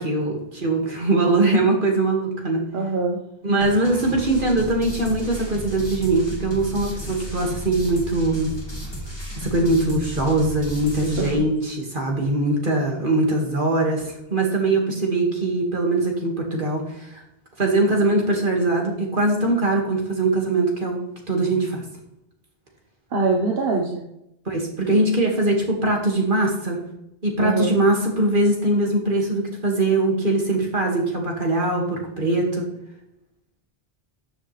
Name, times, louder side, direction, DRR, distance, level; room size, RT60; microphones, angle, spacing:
voice 1, 0.0-2.7 3.4-8.5 9.4-17.2 17.6-21.0 21.3-21.8 24.5-26.8 27.2-32.7, right 2 dB, 55° right, 0 dB, 2.4 m, -22 dB
voice 2, 2.7-3.2 11.2-11.3 23.1-24.0 27.4-27.7, right 3 dB, 70° right, 0 dB, 1.4 m, -23 dB
sound 1, 3.6-11.3, equal, 25° left, 2.3 m, -34 dB
13.0 x 7.3 x 3.4 m, 0.85 s
omnidirectional pair, 1.0 m